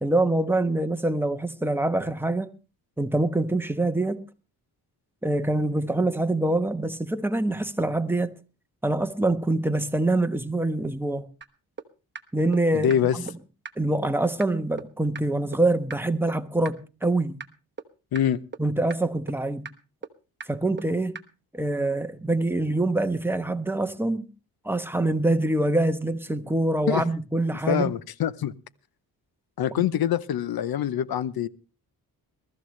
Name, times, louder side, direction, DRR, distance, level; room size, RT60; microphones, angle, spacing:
voice 1, 0.0-2.5 3.0-4.2 5.2-8.3 8.8-11.3 12.3-13.2 13.8-17.4 18.6-19.6 20.5-21.2 21.5-24.3 24.6-27.9, right 2 dB, 5° right, 1.1 m, -25 dB
sound 1, 11.4-11.5 11.8-11.9 12.1-12.2 12.5-12.6 12.9-13.0 13.3-13.4 13.6-13.7 14.0-14.1 14.4-14.5 14.8-14.9 15.1-15.2 15.5-15.6 15.9-16.0 16.3-16.4 16.6-16.7 17.0-17.1 17.4-17.5 17.8-17.9 18.1-18.2 18.5-18.6 18.9-19.0 19.3-19.4 19.6-19.7 20.0-20.1 20.4-20.5 20.8-20.9 21.1-21.2, right 5 dB, 30° right, 1.1 m, -36 dB
voice 2, 12.7-13.2 18.1-18.5 26.9-27.0 27.7-28.5 29.6-31.5, left 9 dB, 70° left, 0.9 m, -24 dB
22.0 x 13.5 x 3.2 m
cardioid pair, 95°, 38 cm